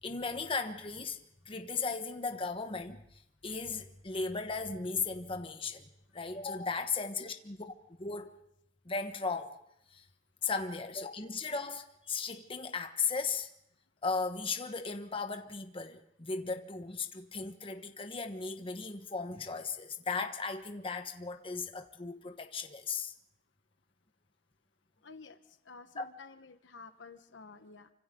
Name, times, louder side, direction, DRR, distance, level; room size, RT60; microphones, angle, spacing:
voice 1, 0.0-7.7 8.0-8.4 8.8-9.6 9.9-10.1 10.4-13.5 14.0-23.1 26.0-26.1, left 4 dB, 30° left, 1.3 m, -36 dB
voice 2, 25.0-25.4 25.6-27.9, left 4 dB, 90° left, 1.3 m, -51 dB
28.5 x 25.5 x 3.8 m
head